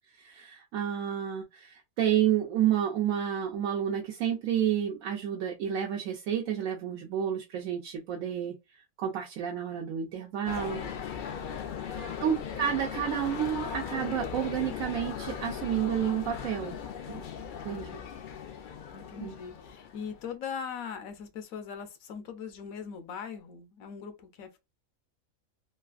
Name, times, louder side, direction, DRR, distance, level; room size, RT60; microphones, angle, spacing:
voice 1, 0.1-10.8 11.9-16.8 17.1-17.2 17.6-18.0 19.2-19.3, right 9 dB, 80° right, 1.0 m, -30 dB
sound 1, 10.5-20.3, left 7 dB, 70° left, 0.5 m, -38 dB
voice 2, 11.7-12.2 18.9-24.6, left 7 dB, 85° left, 1.1 m, -41 dB
3.2 x 2.4 x 2.3 m
omnidirectional pair, 1.4 m